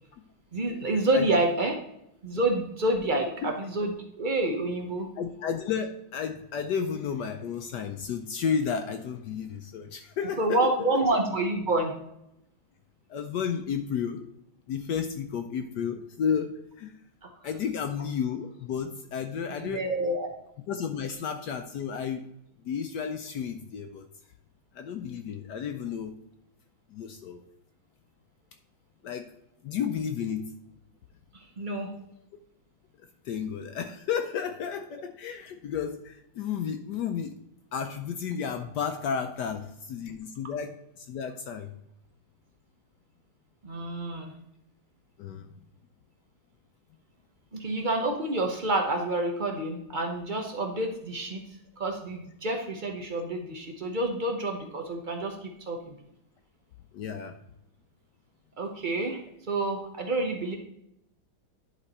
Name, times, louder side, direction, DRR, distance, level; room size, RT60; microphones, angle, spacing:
voice 1, 0.5-1.7 2.2-5.1 10.4-12.0 17.2-17.3 19.5-20.3 31.3-31.9 43.6-44.3 47.5-51.4 51.8-56.0 58.6-59.2 59.5-60.6, right 2 dB, 80° right, 3 dB, 0.4 m, -28 dB
voice 2, 5.2-11.0 13.1-14.3 14.7-16.9 17.4-19.8 20.7-22.2 22.6-24.0 24.7-26.1 26.9-27.4 29.0-29.3 29.6-30.5 33.2-37.4 37.7-41.7 45.2-45.5 56.9-57.3, left 7 dB, 70° left, 7 dB, 1.0 m, -32 dB
10.5 x 4.1 x 4.2 m, 0.80 s
omnidirectional pair, 2.2 m